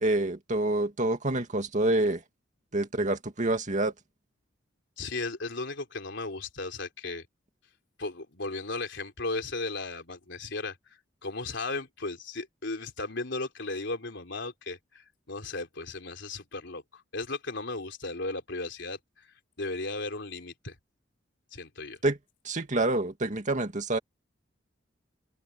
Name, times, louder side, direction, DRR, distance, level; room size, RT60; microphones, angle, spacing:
voice 1, 0.0-2.2 2.7-3.9 22.0-22.2 22.5-24.0, right 2 dB, 40° right, 2.2 m, -27 dB
voice 2, 5.0-7.3 8.0-19.3 19.6-20.8 21.5-22.0, left 3 dB, 65° left, 4.0 m, -36 dB
open air
head